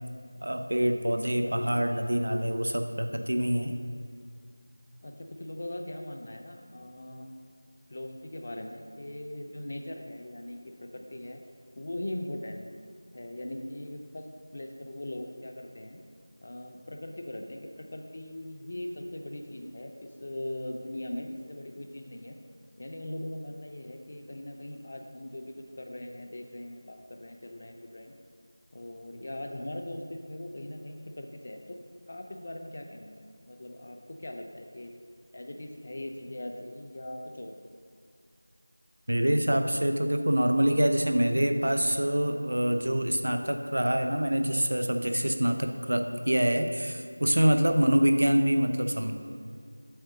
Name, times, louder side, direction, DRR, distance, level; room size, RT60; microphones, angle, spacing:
voice 1, 0.4-3.8 39.1-49.1, equal, 75° right, 6 dB, 0.7 m, -25 dB
voice 2, 5.0-7.3 7.9-11.4 11.8-12.7 13.1-14.3 14.5-16.0 16.4-22.4 22.8-28.2 28.7-31.8 32.1-34.9 35.3-37.6 47.8-47.9, left 1 dB, 30° left, 4 dB, 0.5 m, -40 dB
7.8 x 3.7 x 6.5 m, 2.2 s
figure-of-eight pair, 180°, 0 cm